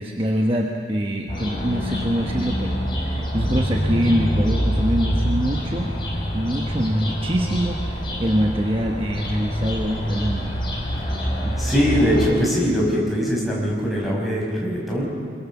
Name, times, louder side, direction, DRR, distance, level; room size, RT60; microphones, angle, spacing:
voice 1, 0.0-5.9 6.3-10.6 11.4-11.5, equal, 30° right, 1 dB, 1.2 m, -24 dB
sound 1, 1.3-12.3, equal, 25° left, 5.9 m, -25 dB
voice 2, 11.6-15.1, equal, ahead, -5 dB, 5.9 m, -21 dB
25.5 x 22.5 x 7.2 m, 2.2 s
head